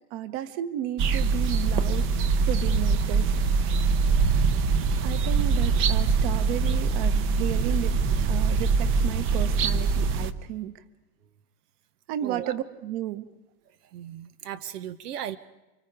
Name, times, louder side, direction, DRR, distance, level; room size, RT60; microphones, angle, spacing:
voice 1, 0.1-2.1 2.5-3.7 5.0-8.0 8.3-10.8 12.1-13.3, right 12 dB, 45° right, 12 dB, 1.4 m, -33 dB
sound 1, 1.0-10.3, right 4 dB, 25° right, 0.8 m, -23 dB
voice 2, 12.2-12.5 13.9-15.4, right 10 dB, 85° right, 13 dB, 1.1 m, -36 dB
28.5 x 25.0 x 5.0 m, 1.0 s
supercardioid pair, 150°, 45 cm